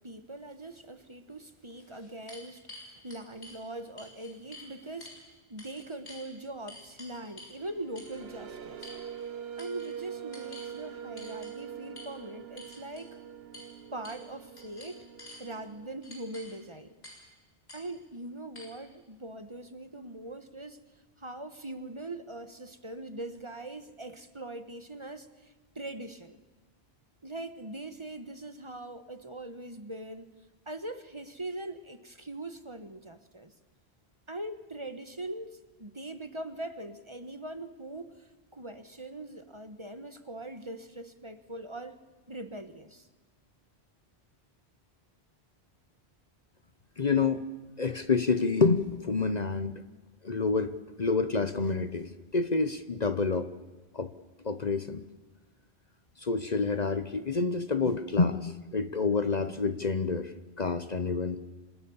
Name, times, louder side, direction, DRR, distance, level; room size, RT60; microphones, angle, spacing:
voice 1, 0.0-5.2 5.5-8.9 9.6-13.2 13.9-15.1 15.4-16.9 17.7-20.8 21.2-26.4 27.2-30.4 30.7-33.5 34.3-42.0 42.3-43.1, right 1 dB, 30° right, 10 dB, 1.4 m, -41 dB
sound 1, 1.1-1.2 1.7-3.6 4.0-4.7 5.0-5.2 5.6-6.2 6.7-7.6 8.0-8.2 8.8-9.3 9.6-9.9 10.3-10.7 11.2-11.5 12.0-12.1 12.6-13.1 13.5-13.7 14.0-14.3 14.6-15.4 16.0-16.6 17.0-17.3 17.7-17.8 18.6-18.7, left 1 dB, 80° left, 7.3 m, -49 dB
sound 2, 7.5-15.9, right 8 dB, 70° right, 1.3 m, -44 dB
voice 2, 47.0-47.4 47.8-49.8 50.2-53.5 53.9-54.1 54.4-55.0 56.2-61.4, left 4 dB, 45° left, 11 dB, 1.0 m, -28 dB
29.0 x 26.0 x 7.1 m, 1.2 s
omnidirectional pair, 1.1 m